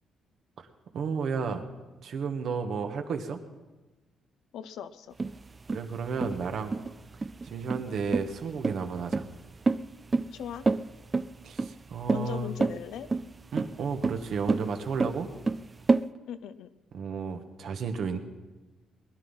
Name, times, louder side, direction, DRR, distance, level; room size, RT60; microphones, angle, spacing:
voice 1, 0.9-1.6 2.0-3.4 5.7-6.8 7.4-9.2 11.4-12.6 13.5-15.3 16.9-18.2, right 5 dB, 65° right, 6 dB, 1.5 m, -32 dB
voice 2, 4.5-5.1 10.3-10.7 12.1-13.1 16.3-16.7, left 8 dB, 80° left, 13 dB, 0.7 m, -38 dB
sound 1, 5.2-16.0, right 3 dB, 30° right, 0.4 m, -29 dB
20.5 x 11.0 x 5.7 m, 1.2 s
cardioid pair, 90°, 0 cm